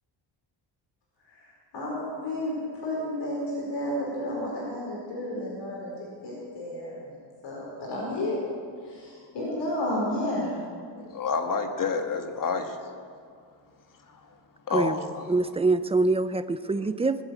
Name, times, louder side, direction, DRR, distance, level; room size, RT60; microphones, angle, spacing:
voice 1, 1.7-5.9 6.2-7.1 7.4-8.4 8.8-10.6, left 1 dB, 65° left, -4 dB, 4.9 m, -31 dB
voice 2, 11.0-12.8 14.1-14.2 14.7-15.3, left 5 dB, 45° left, 6 dB, 1.7 m, -29 dB
voice 3, 15.3-17.2, right 3 dB, 15° right, 12 dB, 0.5 m, -24 dB
20.0 x 8.3 x 8.4 m, 2.1 s
cardioid pair, 135°, 45 cm